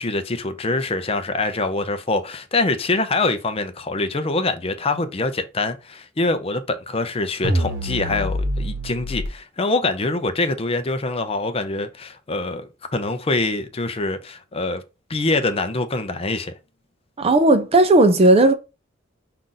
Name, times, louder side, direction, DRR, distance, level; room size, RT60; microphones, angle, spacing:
voice 1, 0.0-14.8 15.1-16.5, left 2 dB, 30° left, 0.5 m, -24 dB
sound 1, 7.4-9.3, equal, 70° right, 1.0 m, -25 dB
voice 2, 17.2-18.5, right 2 dB, 30° right, 0.4 m, -14 dB
5.5 x 2.5 x 3.8 m
head